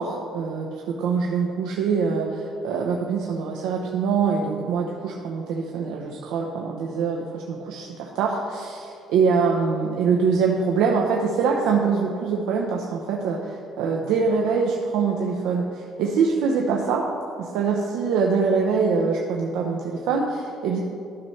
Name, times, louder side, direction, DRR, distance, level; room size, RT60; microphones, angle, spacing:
voice 1, 0.0-17.1 17.4-20.8, right 5 dB, 85° right, 0 dB, 0.7 m, -24 dB
13.0 x 5.6 x 3.2 m, 2.5 s
cardioid pair, 170°, 0 cm